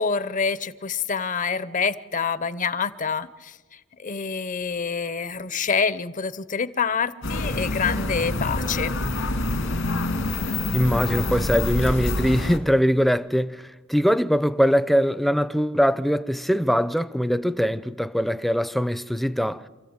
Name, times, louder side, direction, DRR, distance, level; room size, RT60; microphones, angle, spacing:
voice 1, 0.0-3.6 4.0-8.9, left 5 dB, 40° left, 0.8 m, -26 dB
sound 1, 7.2-12.6, left 2 dB, 75° left, 2.5 m, -26 dB
voice 2, 10.7-13.6 13.9-19.6, equal, ahead, 0.6 m, -22 dB
27.5 x 14.5 x 8.9 m
head